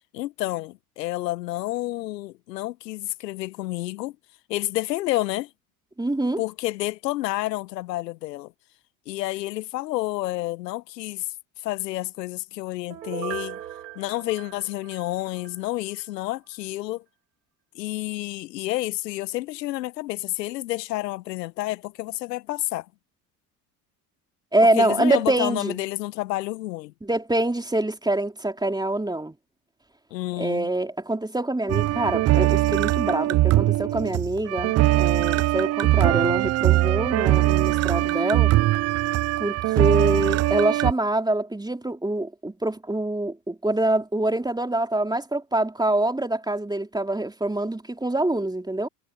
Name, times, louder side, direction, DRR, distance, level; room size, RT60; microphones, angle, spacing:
voice 1, 0.1-4.1 4.5-5.5 6.4-8.5 9.1-11.3 11.6-13.6 14.0-17.0 17.7-22.9 24.8-26.9 30.1-30.7, left 17 dB, 80° left, 1.3 m, -29 dB
voice 2, 6.0-6.4 24.5-25.8 27.0-29.4 30.4-38.5 39.4-48.9, right 1 dB, 10° right, 3.7 m, -25 dB
Piano, 12.9-15.6 16.0-16.1, right 11 dB, 90° right, 4.1 m, -38 dB
sound 1, 31.7-40.9, right 16 dB, 35° right, 0.4 m, -21 dB
hypercardioid pair, 65°, 49 cm